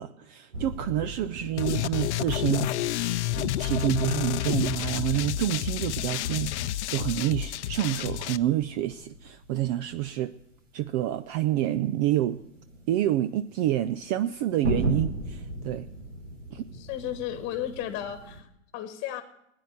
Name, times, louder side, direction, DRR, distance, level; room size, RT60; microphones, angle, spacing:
voice 1, 0.0-10.3 10.7-12.4 12.9-15.9 16.5-16.7, right 13 dB, 35° right, 14 dB, 0.5 m, -28 dB
sound 1, 0.5-18.4, equal, 80° right, 4.2 m, -39 dB
sound 2, 1.6-8.4, left 13 dB, 65° left, 0.7 m, -29 dB
voice 2, 16.8-18.5 18.7-19.2, left 11 dB, 30° left, 9 dB, 1.5 m, -34 dB
16.0 x 9.6 x 8.4 m, 0.77 s
hypercardioid pair, 120°, 37 cm